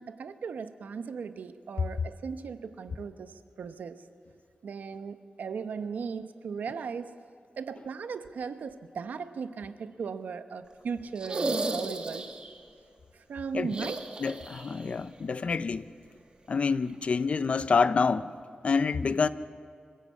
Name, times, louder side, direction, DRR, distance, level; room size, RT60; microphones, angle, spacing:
voice 1, 0.0-4.0 4.6-7.2 7.6-12.3 13.1-14.1, right 6 dB, 90° right, 1.0 m, -37 dB
sound 1, 11.1-12.6 13.7-14.9 15.1-15.2 16.8-16.9, right 3 dB, 35° right, 1.7 m, -34 dB
voice 2, 14.2-15.9 16.5-18.3 18.6-19.3, left 5 dB, 50° left, 0.6 m, -27 dB
25.5 x 16.0 x 8.5 m
wide cardioid pair, 150°, 3 cm